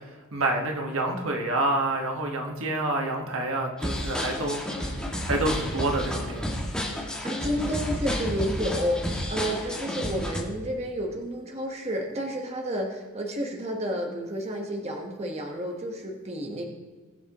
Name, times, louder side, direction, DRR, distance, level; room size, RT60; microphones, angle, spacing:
voice 1, 0.3-4.6 5.2-6.4, right 2 dB, 65° right, 2 dB, 1.5 m, -27 dB
sound 1, 3.8-10.4, equal, 5° left, 1.9 m, -31 dB
voice 2, 7.2-16.6, equal, 30° right, 1 dB, 1.3 m, -31 dB
21.0 x 7.2 x 3.0 m, 1.4 s
head